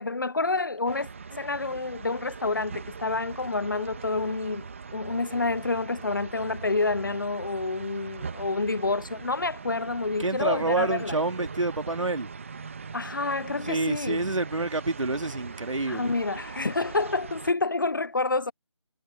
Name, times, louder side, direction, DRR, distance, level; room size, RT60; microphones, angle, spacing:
voice 1, 0.0-11.1 12.9-14.2 15.9-18.5, left 3 dB, 40° left, 0.6 m, -28 dB
sound 1, 0.9-17.5, right 5 dB, 25° right, 1.4 m, -41 dB
voice 2, 10.2-12.3 13.6-16.1, right 2 dB, 75° right, 2.8 m, -28 dB
figure-of-eight pair, 175°, 16 cm